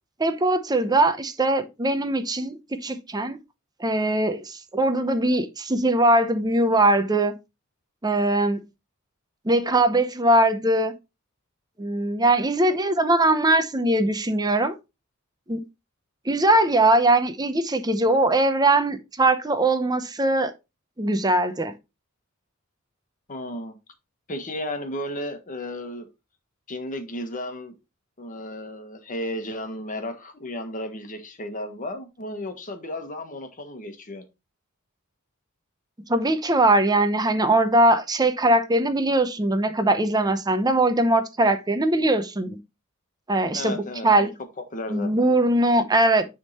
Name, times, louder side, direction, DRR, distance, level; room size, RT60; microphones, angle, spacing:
voice 1, 0.2-3.4 3.8-7.3 8.0-8.6 9.4-10.9 11.8-14.8 15.5-15.6 16.3-20.5 21.0-21.7 36.1-42.6 43.3-44.3 44.9-46.3, right 2 dB, 20° right, 0.7 m, -21 dB
voice 2, 23.3-23.8 24.3-26.1 26.7-27.8 28.2-34.2 43.5-44.3 44.7-45.2, left 1 dB, 40° left, 1.3 m, -34 dB
9.5 x 3.7 x 4.1 m
head